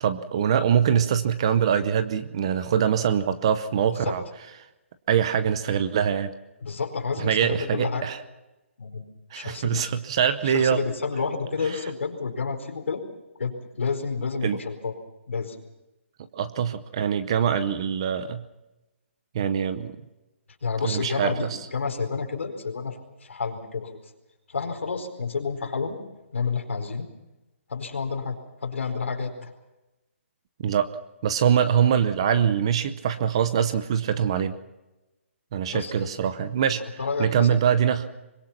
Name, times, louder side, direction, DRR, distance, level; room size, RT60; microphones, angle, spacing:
voice 1, 0.0-4.2 5.1-6.3 7.2-8.2 9.3-10.8 14.4-14.6 16.3-18.4 19.3-19.9 20.8-21.6 30.6-30.9 31.2-34.6 35.5-36.8 37.2-38.1, right 8 dB, 25° right, 12 dB, 0.8 m, -23 dB
voice 2, 6.6-8.1 8.8-9.0 9.3-9.9 10.4-13.0 13.4-15.0 15.3-15.6 20.6-24.0 24.5-26.0 26.3-27.1 27.7-29.5 35.7-36.1 36.8-37.6, left 5 dB, 65° left, 3 dB, 4.7 m, -30 dB
24.5 x 21.5 x 5.9 m, 1.0 s
hypercardioid pair, 175°, 7 cm